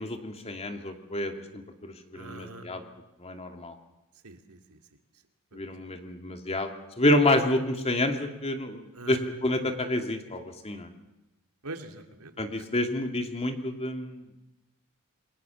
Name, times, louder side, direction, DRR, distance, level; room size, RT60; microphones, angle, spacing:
voice 1, 0.0-2.8 3.2-3.7 5.5-10.9 12.4-14.2, left 1 dB, 30° left, 6 dB, 2.5 m, -29 dB
voice 2, 2.1-2.7 4.2-4.8 5.5-5.8 8.9-9.2 11.6-12.4, right 2 dB, 90° right, 6 dB, 2.5 m, -43 dB
28.5 x 22.5 x 7.2 m, 0.97 s
head